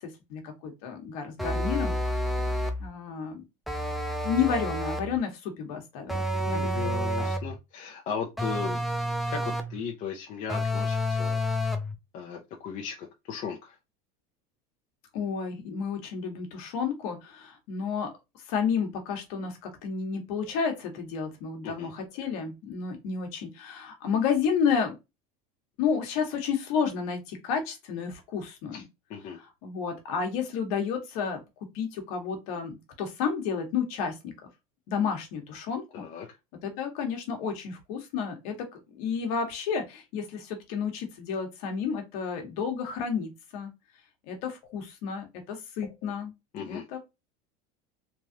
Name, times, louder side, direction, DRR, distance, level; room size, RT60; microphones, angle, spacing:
voice 1, 0.0-2.0 2.8-3.4 4.2-7.3 15.1-18.1 18.5-25.0 25.8-28.9 29.6-31.4 31.7-34.3 34.9-36.0 36.6-38.5 38.9-43.7 44.3-46.3 46.6-47.0, left 6 dB, 70° left, 1.2 m, -31 dB
sound 1, 1.4-2.9 3.7-5.2 6.1-7.6 8.4-9.8 10.5-11.9, equal, ahead, 0.4 m, -29 dB
voice 2, 6.3-11.4 12.1-13.8 21.6-21.9 28.7-28.8 29.1-29.4 35.9-36.3 46.5-46.9, left 6 dB, 40° left, 0.6 m, -37 dB
3.2 x 2.4 x 2.7 m
supercardioid pair, 135°, 19 cm